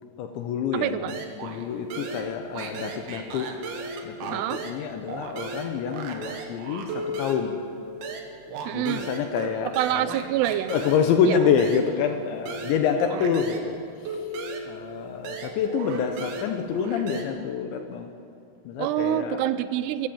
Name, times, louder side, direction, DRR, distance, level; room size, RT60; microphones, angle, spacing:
voice 1, 0.2-3.5 4.0-7.6 8.7-10.2 10.7-13.8 14.6-18.1 18.7-19.4, left 7 dB, 75° left, 5 dB, 3.3 m, -27 dB
voice 2, 0.7-1.1 4.3-4.6 8.7-9.1 9.8-10.7 11.3-11.4 18.8-20.1, right 12 dB, 85° right, 12 dB, 2.4 m, -26 dB
sound 1, 1.1-1.6 1.9-4.8 5.1-13.7 14.0-17.2, right 3 dB, 60° right, 3.5 m, -36 dB
24.0 x 16.5 x 7.2 m, 2.7 s
omnidirectional pair, 5.4 m